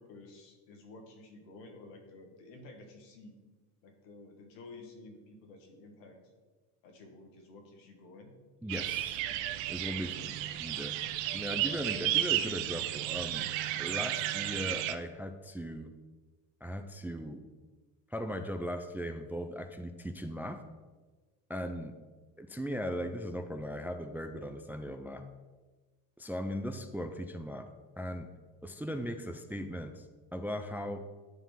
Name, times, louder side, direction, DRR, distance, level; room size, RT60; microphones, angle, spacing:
voice 1, 0.0-3.4 3.8-6.2 6.8-8.3 10.0-10.5, left 2 dB, 90° left, 3 dB, 1.6 m, -52 dB
voice 2, 8.6-9.2 9.7-10.9 11.3-13.5 13.8-15.9 16.6-17.4 18.1-20.6 21.5-21.9 22.4-25.2 26.2-27.7 28.0-28.3 28.6-30.0 30.3-31.0, equal, 5° right, 7 dB, 0.3 m, -38 dB
sound 1, 8.7-15.0, right 13 dB, 65° right, 0.7 m, -33 dB
9.7 x 3.5 x 5.6 m, 1.3 s
supercardioid pair, 80°, 48 cm